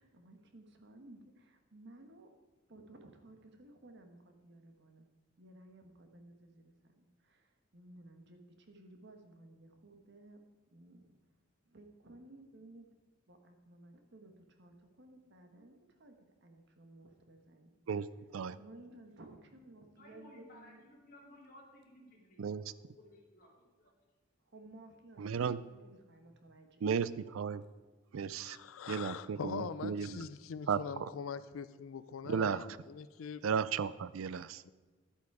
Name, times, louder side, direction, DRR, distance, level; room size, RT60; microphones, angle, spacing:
voice 1, 0.0-2.3 2.7-5.0 5.4-10.4 10.7-11.2 11.7-12.9 13.3-17.7 18.6-20.9 24.4-26.9, right 2 dB, 60° right, 5 dB, 1.3 m, -57 dB
voice 2, 20.0-23.5 23.8-23.9, left 1 dB, 45° left, -3 dB, 2.8 m, -58 dB
voice 3, 25.2-25.6 26.8-27.6 28.1-28.6 28.9-30.3 30.7-31.1 32.3-32.7 33.4-34.6, right 6 dB, 85° right, 17 dB, 0.4 m, -34 dB
voice 4, 28.4-33.4 34.6-34.7, left 6 dB, 85° left, 14 dB, 0.4 m, -43 dB
11.5 x 8.3 x 4.8 m, 1.3 s
head